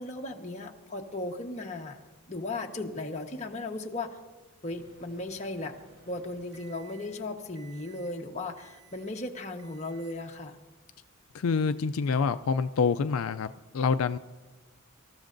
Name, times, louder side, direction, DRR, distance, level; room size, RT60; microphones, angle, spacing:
voice 1, 0.0-2.0 2.3-4.2 4.6-5.8 6.1-10.6, left 2 dB, 35° left, 1 dB, 1.2 m, -36 dB
Microwave oven, 4.7-7.2 7.5-8.1 8.6-9.2 9.6-10.2, right 4 dB, 60° right, 1.5 m, -57 dB
voice 2, 11.3-14.2, left 5 dB, 85° left, 11 dB, 0.4 m, -27 dB
26.5 x 14.0 x 2.6 m, 1.2 s
head